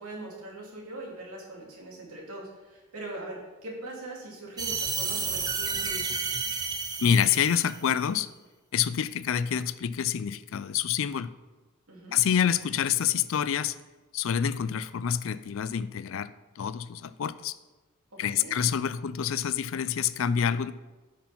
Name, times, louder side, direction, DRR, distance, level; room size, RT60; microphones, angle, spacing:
voice 1, 0.0-6.1 11.9-12.2 18.1-18.6, right 1 dB, 85° right, -2 dB, 2.6 m, -41 dB
sound 1, 4.6-7.9, right 5 dB, 20° right, 0.6 m, -31 dB
voice 2, 7.0-8.3 8.7-11.3 12.1-13.7 14.1-16.3 16.6-17.5 18.2-20.7, left 8 dB, 60° left, 16 dB, 0.4 m, -27 dB
8.6 x 6.0 x 5.5 m, 1.2 s
head